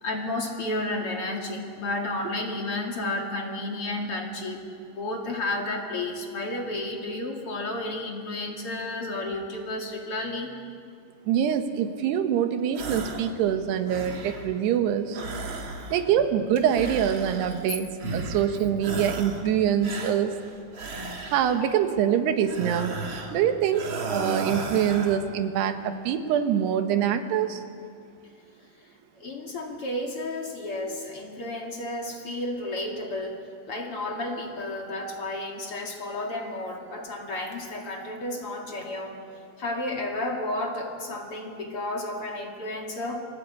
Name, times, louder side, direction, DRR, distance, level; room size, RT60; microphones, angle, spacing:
voice 1, 0.0-10.5 21.6-21.7 28.8-33.4 33.7-39.2 39.6-43.2, left 2 dB, 40° left, 1 dB, 2.3 m, -32 dB
voice 2, 11.3-15.2 15.9-17.9 18.1-20.3 21.3-22.9 23.3-27.6, right 9 dB, 70° right, 7 dB, 3.2 m, -24 dB
sound 1, 12.7-13.3 13.7-14.5 15.1-16.2 16.7-17.7 18.0-18.5 18.8-19.5 19.8-21.7 22.4-23.4 23.7-25.2, right 3 dB, 40° right, 1.9 m, -34 dB
28.0 x 20.0 x 8.5 m, 2.3 s
omnidirectional pair, 5.3 m